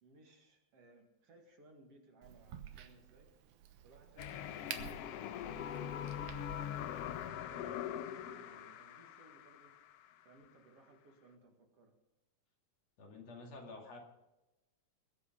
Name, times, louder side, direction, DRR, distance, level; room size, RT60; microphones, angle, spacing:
voice 1, 0.0-3.3 3.8-4.8 5.4-9.8 10.2-12.0, right 2 dB, 55° right, 2 dB, 3.0 m, -62 dB
Crack, 2.2-7.3, right 9 dB, 75° right, 2.5 m, -51 dB
sound 1, 4.2-10.1, left 10 dB, 75° left, 1.5 m, -42 dB
voice 2, 13.0-14.0, left 3 dB, 60° left, 1 dB, 3.5 m, -50 dB
21.5 x 8.5 x 5.5 m, 0.99 s
omnidirectional pair, 3.5 m